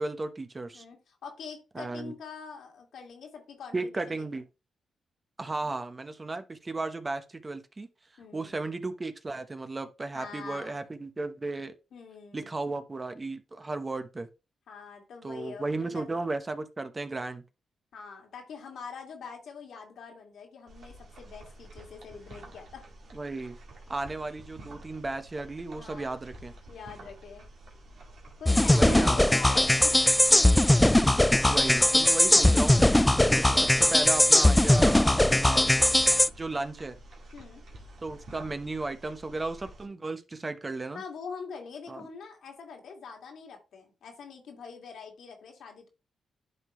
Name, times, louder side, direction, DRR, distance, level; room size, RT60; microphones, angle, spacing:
voice 1, 0.0-0.8 1.7-2.1 3.7-4.4 5.4-7.9 8.3-11.7 12.3-14.3 15.2-17.4 23.1-23.6 23.9-26.5 28.7-29.2 30.9-32.8 33.2-35.7 36.4-37.0 38.0-41.0 41.9-42.0, right 3 dB, 30° right, 0.9 m, -34 dB
voice 2, 0.7-4.4 5.6-5.8 8.2-8.6 10.1-10.8 11.9-12.5 14.7-16.1 17.9-22.8 25.7-26.2 26.7-27.5 28.4-30.0 31.4-31.6 37.3-37.6 40.9-45.9, left 5 dB, 75° left, 2.0 m, -44 dB
sound 1, 20.7-39.9, right 1 dB, 65° right, 2.0 m, -49 dB
sound 2, 28.5-36.3, left 1 dB, 10° left, 0.3 m, -20 dB
10.5 x 3.7 x 3.1 m
supercardioid pair, 55°, 0 cm